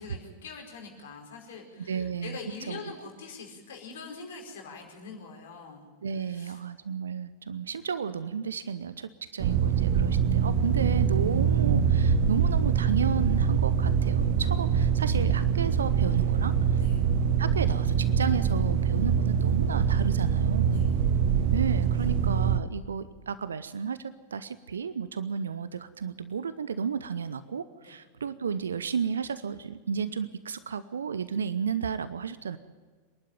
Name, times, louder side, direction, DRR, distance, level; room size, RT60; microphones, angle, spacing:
voice 1, 0.0-5.9 6.2-6.6 16.7-17.1 20.7-21.0 27.8-27.9, left 4 dB, 60° left, 2 dB, 4.9 m, -44 dB
voice 2, 1.9-2.4 2.7-3.1 6.0-16.8 17.4-20.9 21.5-32.6, right 6 dB, 70° right, 15 dB, 0.8 m, -33 dB
sound 1, 9.4-22.6, right 7 dB, 50° right, 1.1 m, -24 dB
26.0 x 11.5 x 9.2 m, 1.5 s
figure-of-eight pair, 90°, 0 cm